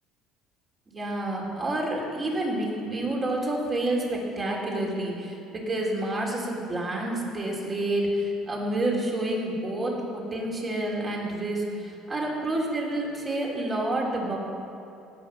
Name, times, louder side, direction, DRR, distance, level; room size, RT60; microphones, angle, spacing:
voice 1, 0.9-14.4, right 1 dB, 30° right, -2 dB, 3.6 m, -29 dB
17.5 x 6.7 x 6.5 m, 2.7 s
supercardioid pair, 100°, 0 cm